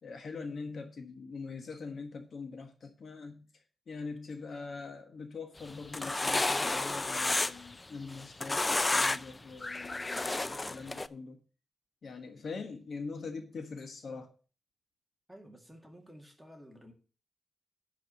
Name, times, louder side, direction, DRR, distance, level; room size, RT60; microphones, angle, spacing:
voice 1, 0.0-3.5 3.9-11.4 12.0-14.3, left 4 dB, 55° left, 1.3 m, -43 dB
sound 1, 5.7-7.7 8.1-9.3 9.6-11.1, left 2 dB, 20° left, 0.4 m, -31 dB
voice 2, 15.3-16.9, equal, ahead, 2.0 m, -52 dB
10.5 x 4.7 x 6.9 m
wide cardioid pair, 145°, 0 cm